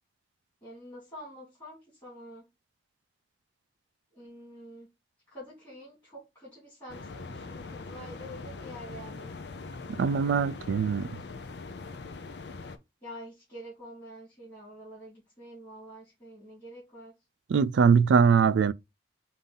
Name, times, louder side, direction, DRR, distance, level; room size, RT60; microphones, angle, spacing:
voice 1, 0.6-2.4 4.1-4.9 5.3-9.3 13.0-17.1, equal, 25° left, 2.7 m, -47 dB
sound 1, 6.9-12.8, left 3 dB, 70° left, 0.6 m, -42 dB
voice 2, 10.0-11.1 17.5-18.7, right 6 dB, 85° right, 0.3 m, -22 dB
5.3 x 2.7 x 3.7 m
head